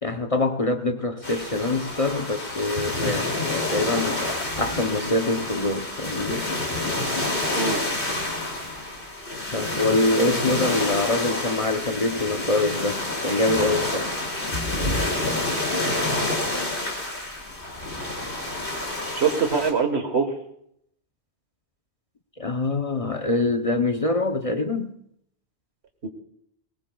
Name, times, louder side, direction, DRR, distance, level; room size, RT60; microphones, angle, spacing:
voice 1, 0.0-6.5 9.5-14.1 22.4-25.0, left 2 dB, 35° left, 0.8 m, -25 dB
sound 1, 1.2-19.7, left 2 dB, 55° left, 3.0 m, -28 dB
voice 2, 19.2-20.3 26.0-26.1, right 5 dB, 75° right, 1.8 m, -23 dB
22.5 x 20.0 x 2.4 m
omnidirectional pair, 1.1 m